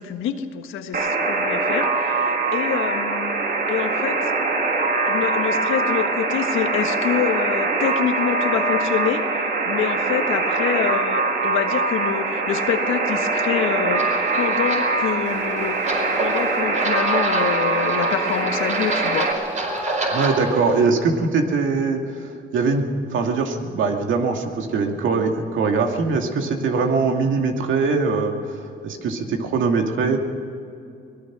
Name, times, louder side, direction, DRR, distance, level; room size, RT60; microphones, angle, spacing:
voice 1, 0.0-3.4 3.7-4.3 5.1-9.2 9.6-14.0 14.3-15.8 16.2-19.3, left 9 dB, 85° left, 7 dB, 1.5 m, -26 dB
Alarm, 0.9-19.3, right 3 dB, 50° right, 2.8 m, -23 dB
sound 1, 13.9-20.8, right 2 dB, 35° right, 4.9 m, -29 dB
voice 2, 20.1-30.2, right 4 dB, 75° right, 3 dB, 2.5 m, -22 dB
23.5 x 19.0 x 6.2 m, 2.5 s
cardioid pair, 90°, 20 cm